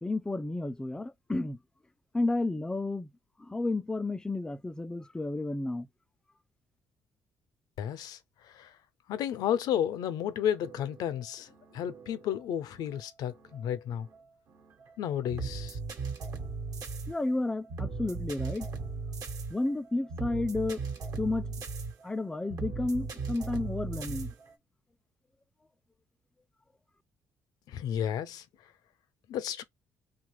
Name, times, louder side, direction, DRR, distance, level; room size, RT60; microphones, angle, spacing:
voice 1, 0.0-1.6 2.1-3.1 3.4-5.9 17.1-18.7 19.5-20.8 21.2-21.5 22.0-24.3, left 2 dB, 10° left, 0.4 m, -32 dB
voice 2, 7.8-8.2 8.5-8.7 9.1-14.1 15.0-15.8 27.7-28.4 29.3-29.6, left 9 dB, 75° left, 0.5 m, -32 dB
sound 1, 10.3-24.5, right 4 dB, 70° right, 1.1 m, -39 dB
2.8 x 2.3 x 3.1 m
cardioid pair, 85°, 7 cm